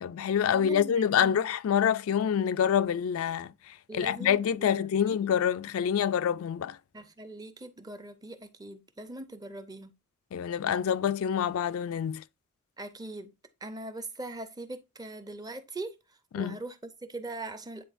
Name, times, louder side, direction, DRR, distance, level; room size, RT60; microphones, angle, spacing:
voice 1, 0.0-3.5 3.9-6.8 10.3-12.2 16.3-16.6, left 8 dB, 70° left, 0.3 m, -26 dB
voice 2, 0.5-1.5 3.9-5.2 6.9-9.9 12.8-13.3 13.6-16.0 16.4-17.8, right 2 dB, 15° right, 0.6 m, -41 dB
9.1 x 4.2 x 2.5 m
head